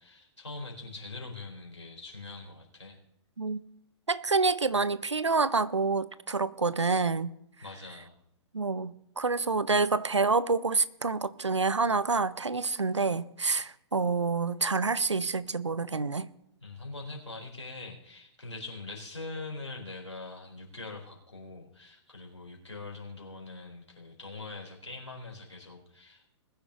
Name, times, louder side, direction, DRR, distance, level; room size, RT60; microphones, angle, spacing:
voice 1, 0.0-3.0 7.6-8.2 16.6-26.3, left 3 dB, 85° left, 3.9 m, -43 dB
voice 2, 4.1-7.3 8.5-16.3, right 4 dB, 80° right, 0.6 m, -27 dB
20.5 x 10.0 x 2.9 m
figure-of-eight pair, 115°, 15 cm